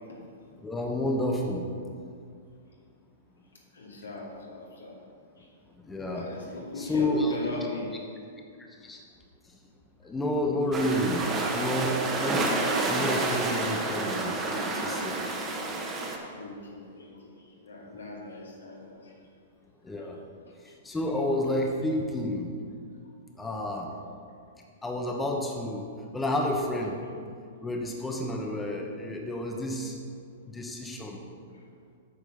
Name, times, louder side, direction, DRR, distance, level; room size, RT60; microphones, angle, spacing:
voice 1, 0.6-1.6 5.8-6.3 6.8-7.3 8.8-9.0 10.0-11.2 11.5-15.3 19.8-20.2 20.8-22.5 23.4-23.9 24.8-25.9 26.1-27.0 27.6-30.0 30.5-31.2, left 1 dB, 10° left, 1 dB, 1.0 m, -30 dB
voice 2, 3.7-5.0 5.4-5.5 6.1-7.9 16.2-19.2 20.0-20.1 20.5-20.7 31.5-31.7, left 2 dB, 90° left, -3 dB, 2.3 m, -39 dB
sound 1, 10.7-16.2, right 3 dB, 20° right, 1.2 m, -29 dB
8.6 x 6.3 x 5.1 m, 2.3 s
hypercardioid pair, 115°, 0 cm